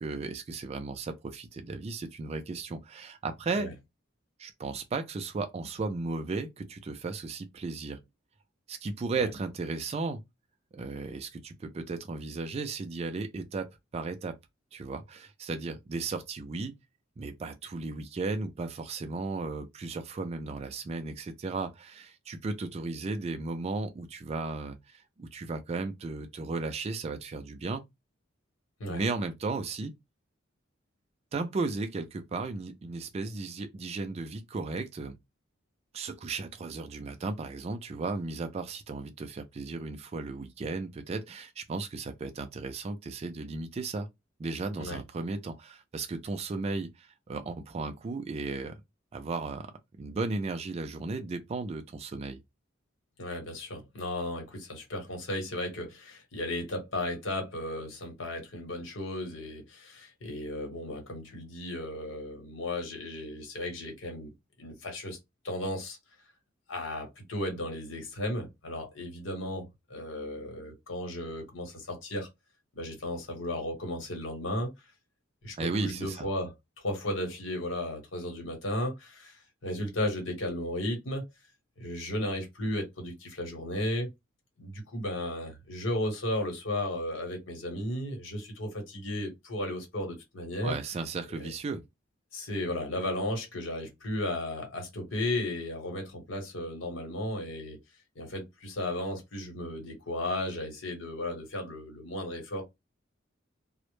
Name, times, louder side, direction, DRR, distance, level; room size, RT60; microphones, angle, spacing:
voice 1, 0.0-3.7 4.4-8.0 8.7-10.2 10.7-14.4 14.7-16.7 17.2-27.8 28.9-29.9 31.3-35.2 35.9-44.1 44.4-48.8 49.1-52.4 75.6-76.3 90.6-91.8, right 3 dB, 35° right, 0.3 m, -35 dB
voice 2, 53.2-64.3 64.6-65.2 65.4-66.0 66.7-72.3 72.8-74.7 75.4-76.5 76.8-81.2 81.8-84.1 84.6-90.8 91.3-91.5 92.3-97.8 98.1-102.6, left 1 dB, 90° left, 1.0 m, -35 dB
2.0 x 2.0 x 3.0 m
head